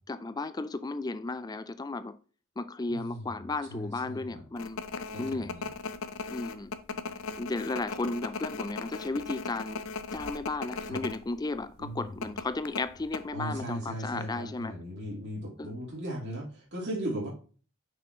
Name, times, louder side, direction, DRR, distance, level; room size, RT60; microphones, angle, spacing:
voice 1, 0.1-2.2 2.6-4.8 5.2-5.6 6.3-6.7 7.4-9.8 10.1-14.8 15.6-15.7, left 3 dB, 20° left, 0.3 m, -34 dB
voice 2, 2.9-3.3 3.7-4.4 5.1-5.6 10.8-11.0 11.8-12.2 13.3-17.3, right 1 dB, 55° right, 2.9 m, -37 dB
sound 1, 4.6-11.2 11.5-11.6 12.2-13.2, left 4 dB, 70° left, 0.6 m, -37 dB
6.2 x 5.7 x 3.0 m
head